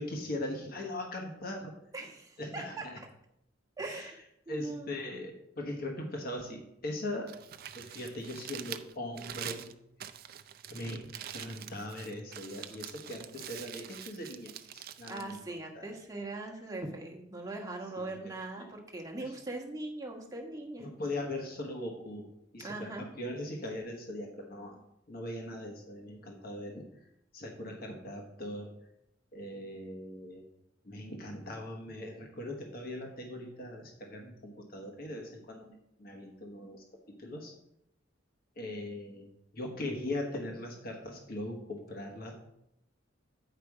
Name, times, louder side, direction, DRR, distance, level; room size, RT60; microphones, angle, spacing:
voice 1, 0.0-1.7 2.4-3.0 3.9-4.2 4.5-7.3 7.7-9.7 10.7-15.9 17.9-18.7 19.2-19.3 20.8-22.2 22.5-24.8 25.1-26.8 27.3-28.7 29.3-30.4 30.8-37.5 38.6-39.3 39.5-42.3, left 1 dB, 50° left, 1 dB, 1.3 m, -40 dB
voice 2, 1.9-2.9 3.8-4.1 4.5-4.9 15.1-20.9 22.6-23.1, right 2 dB, 20° right, 0 dB, 1.2 m, -40 dB
Crumpling crinkling, 7.1-16.2, right 10 dB, 50° right, 0.4 m, -46 dB
9.0 x 5.1 x 4.8 m, 0.80 s
head